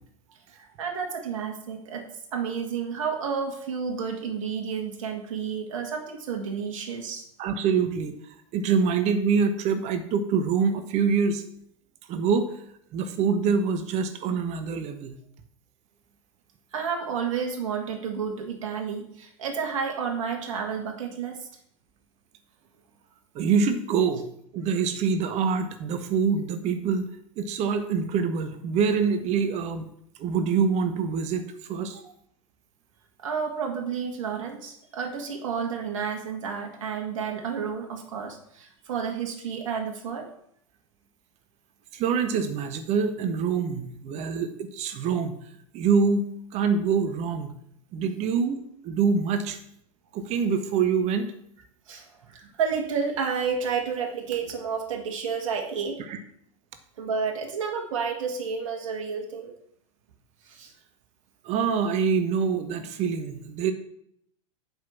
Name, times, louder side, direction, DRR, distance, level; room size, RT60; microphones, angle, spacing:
voice 1, 0.5-2.0 2.3-7.2 16.7-21.5 32.0-32.1 33.2-40.3 51.9-56.0 57.0-59.5 60.4-60.7, right 6 dB, 65° right, 2 dB, 2.0 m, -31 dB
voice 2, 7.4-8.1 8.5-11.4 12.1-12.5 12.9-15.2 23.3-24.3 24.5-27.1 27.4-29.9 30.2-32.0 41.9-45.4 45.7-47.6 47.9-49.6 50.1-51.3 56.1-56.2 61.4-63.7, right 6 dB, 40° right, 9 dB, 1.2 m, -25 dB
7.8 x 5.5 x 7.2 m, 0.70 s
hypercardioid pair, 95°, 18 cm